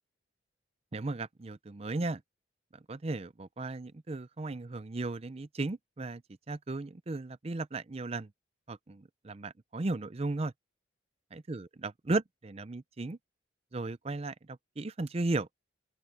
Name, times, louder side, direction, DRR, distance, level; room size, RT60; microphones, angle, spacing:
voice 1, 0.9-2.2 2.9-6.2 6.5-8.3 8.7-10.5 11.3-13.2 13.7-15.5, right 2 dB, 30° right, 0.5 m, -35 dB
open air
head